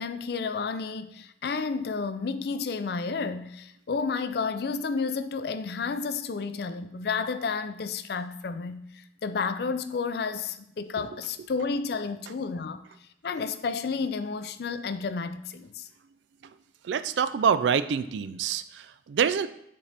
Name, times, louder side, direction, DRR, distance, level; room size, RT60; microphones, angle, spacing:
voice 1, 0.0-8.8 9.2-12.8 13.2-15.9, left 4 dB, 60° left, 0.4 m, -31 dB
voice 2, 16.8-19.5, right 7 dB, 75° right, 0.3 m, -26 dB
7.4 x 4.2 x 3.4 m
head